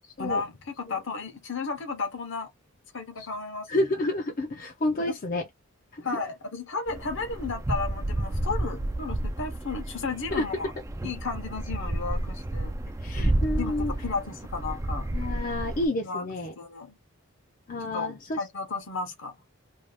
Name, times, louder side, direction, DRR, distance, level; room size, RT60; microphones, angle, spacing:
voice 1, 0.2-0.5 0.8-2.5 2.9-3.8 5.1-5.2 6.0-10.7 11.0-12.7 13.6-15.1 16.0-16.2 16.6-17.0 17.9-19.3, left 4 dB, 60° left, 0.9 m, -33 dB
voice 2, 3.7-5.5 5.9-6.2 10.3-10.7 13.0-13.9 15.1-16.5 17.7-18.4, left 1 dB, 40° left, 0.5 m, -30 dB
sound 1, 6.9-15.9, right 1 dB, 15° right, 0.3 m, -31 dB
2.7 x 2.4 x 3.3 m
head